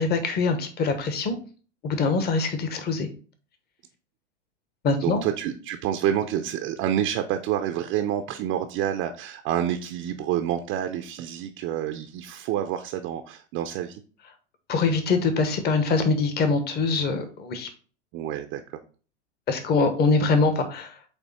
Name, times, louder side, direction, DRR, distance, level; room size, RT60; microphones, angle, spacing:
voice 1, 0.0-1.3 1.8-3.1 4.8-5.2 14.7-17.7 19.5-20.9, left 4 dB, 25° left, 7 dB, 1.1 m, -23 dB
voice 2, 5.0-14.0 18.1-18.6, right 10 dB, 35° right, 6 dB, 0.6 m, -28 dB
8.1 x 2.8 x 4.1 m, 0.39 s
hypercardioid pair, 105°, 36 cm